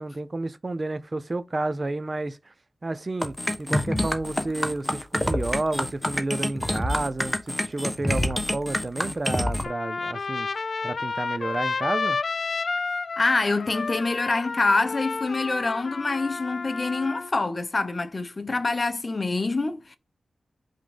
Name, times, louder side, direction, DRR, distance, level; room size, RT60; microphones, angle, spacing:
voice 1, 0.0-2.5 2.8-12.2, right 2 dB, 35° right, 0.6 m, -31 dB
sound 1, 3.2-9.6, left 1 dB, 10° left, 1.1 m, -27 dB
Trumpet, 9.6-17.3, left 4 dB, 55° left, 0.3 m, -31 dB
voice 2, 13.2-20.0, left 3 dB, 35° left, 0.8 m, -26 dB
5.4 x 3.7 x 5.1 m
wide cardioid pair, 115°, 0 cm